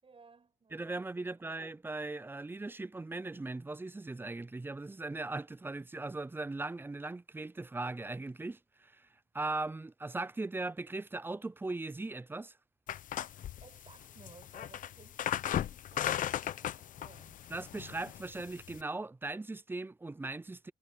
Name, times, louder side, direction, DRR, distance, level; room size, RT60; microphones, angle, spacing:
voice 1, 0.0-1.5 13.6-17.4, right 5 dB, 40° right, 7.2 m, -60 dB
voice 2, 0.7-9.1 9.3-12.5 17.5-20.7, right 2 dB, 15° right, 0.5 m, -39 dB
sound 1, 12.9-18.8, left 10 dB, 75° left, 1.1 m, -37 dB
cardioid pair, 65°, 14 cm